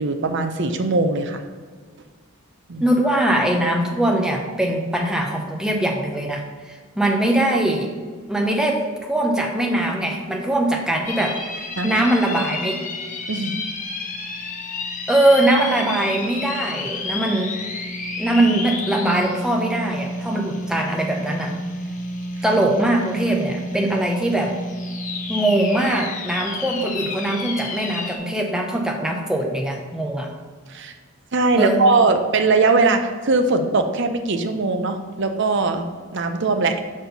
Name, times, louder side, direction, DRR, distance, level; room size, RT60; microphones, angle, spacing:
voice 1, 0.0-1.4 2.7-2.8 11.7-12.1 13.3-13.6 30.7-30.9 31.3-35.8 36.1-36.8, right 3 dB, 55° right, 6 dB, 0.6 m, -20 dB
voice 2, 2.8-7.9 8.3-12.8 15.1-17.8 18.2-21.5 22.4-24.5 25.3-30.3 31.5-31.9, right 1 dB, 5° right, 0 dB, 0.7 m, -21 dB
sound 1, 11.1-28.2, left 2 dB, 35° left, 0.7 m, -30 dB
6.0 x 4.3 x 5.2 m, 1.5 s
head